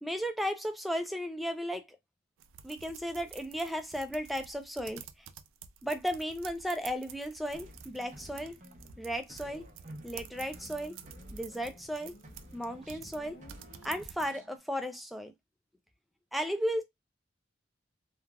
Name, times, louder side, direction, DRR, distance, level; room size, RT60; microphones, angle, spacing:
voice 1, 0.0-2.0 2.6-5.3 5.8-8.6 9.0-9.7 10.0-11.0 11.3-12.2 12.5-13.4 13.8-15.3 16.3-16.8, equal, ahead, 0.3 m, -35 dB
sound 1, 2.4-14.3, right 9 dB, 85° right, 0.3 m, -50 dB
sound 2, 7.5-12.0 12.2-14.6, right 1 dB, 40° right, 0.6 m, -52 dB
Motorcycle, 10.3-14.6, left 1 dB, 60° left, 0.8 m, -57 dB
3.2 x 2.3 x 2.2 m
head